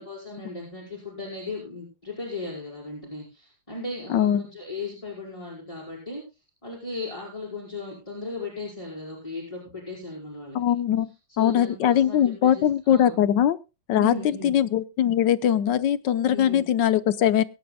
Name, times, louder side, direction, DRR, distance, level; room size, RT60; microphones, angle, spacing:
voice 1, 0.0-6.2 6.6-10.6 11.3-13.2 13.9-14.6 16.3-16.6, left 2 dB, 15° left, -3 dB, 5.1 m, -36 dB
voice 2, 4.1-4.4 10.5-11.1 11.4-13.6 13.9-14.1 14.4-17.4, left 10 dB, 75° left, 15 dB, 1.5 m, -21 dB
23.0 x 11.0 x 2.2 m, 0.29 s
omnidirectional pair, 2.0 m